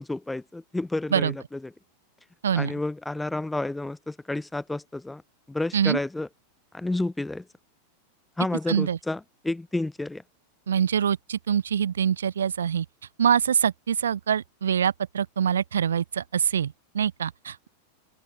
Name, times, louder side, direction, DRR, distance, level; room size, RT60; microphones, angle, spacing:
voice 1, 0.0-1.7 2.5-5.2 5.5-6.3 6.7-7.5 8.4-10.2, left 2 dB, 5° left, 3.4 m, -30 dB
voice 2, 8.7-9.0 10.7-12.8 13.2-17.7, right 8 dB, 65° right, 1.6 m, -24 dB
open air
figure-of-eight pair, 90°, 0 cm